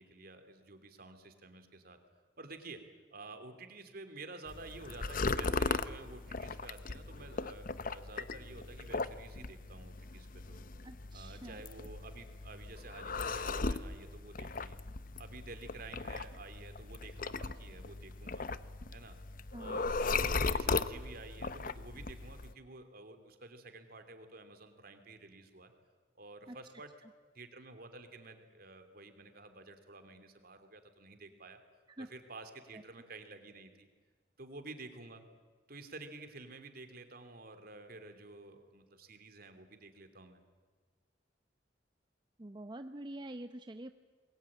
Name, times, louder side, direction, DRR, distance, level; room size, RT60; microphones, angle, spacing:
voice 1, 0.0-2.0 2.4-2.8 3.1-10.6 11.1-14.8 15.2-18.5 18.9-19.2 19.6-25.7 26.2-26.9 27.3-31.6 32.0-33.9 34.4-35.2 35.7-40.4, right 3 dB, 55° right, 7 dB, 3.0 m, -51 dB
sound 1, 4.5-22.5, left 4 dB, 50° left, 0.8 m, -38 dB
voice 2, 10.8-11.6 19.5-19.9 26.5-26.6 27.0-27.1 32.0-32.1 32.7-32.8 42.4-43.9, right 1 dB, 25° right, 9 dB, 0.7 m, -46 dB
26.5 x 21.5 x 8.8 m, 1.5 s
head